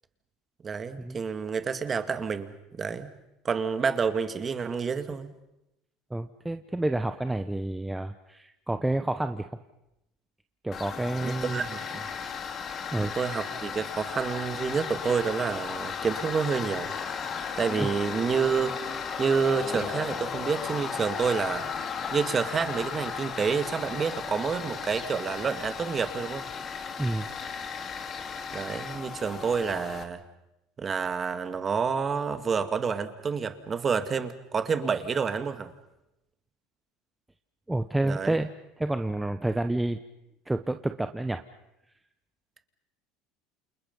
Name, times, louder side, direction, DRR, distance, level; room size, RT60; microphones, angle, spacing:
voice 1, 0.6-3.1 3.4-5.3 11.2-12.1 13.0-16.9 17.6-18.8 19.2-21.7 22.1-26.5 28.5-30.2 30.8-35.7 38.0-38.4, right 5 dB, 25° right, 9 dB, 1.9 m, -29 dB
voice 2, 6.1-9.5 10.6-11.6 12.1-12.3 12.9-13.2 17.8-17.9 27.0-27.3 37.7-38.5 38.8-40.0 40.5-41.4, right 2 dB, 5° right, 8 dB, 0.9 m, -29 dB
Tools, 10.7-30.0, left 6 dB, 35° left, 2.4 m, -35 dB
29.0 x 28.0 x 5.4 m, 0.89 s
supercardioid pair, 120°, 0 cm